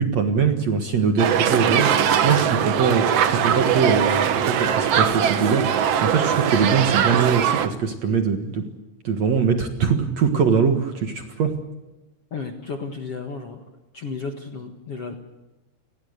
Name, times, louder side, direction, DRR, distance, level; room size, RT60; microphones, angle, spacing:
voice 1, 0.0-8.7 9.0-11.5, right 6 dB, 55° right, 5 dB, 2.2 m, -22 dB
sound 1, 1.2-7.7, right 8 dB, 90° right, 1.4 m, -21 dB
voice 2, 12.3-13.7 13.9-15.1, left 4 dB, 50° left, 4 dB, 1.9 m, -33 dB
29.5 x 20.0 x 6.7 m, 1.1 s
omnidirectional pair, 4.7 m